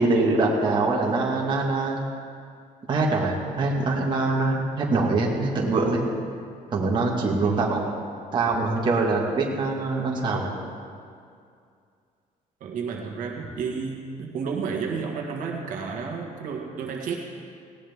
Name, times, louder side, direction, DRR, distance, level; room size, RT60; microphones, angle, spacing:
voice 1, 0.0-2.0 2.9-6.0 6.7-7.8 8.3-10.5, right 3 dB, 30° right, -2 dB, 1.8 m, -23 dB
voice 2, 12.6-17.2, right 5 dB, 65° right, 0 dB, 1.7 m, -31 dB
19.0 x 17.0 x 3.6 m, 2.3 s
cardioid pair, 175°, 15 cm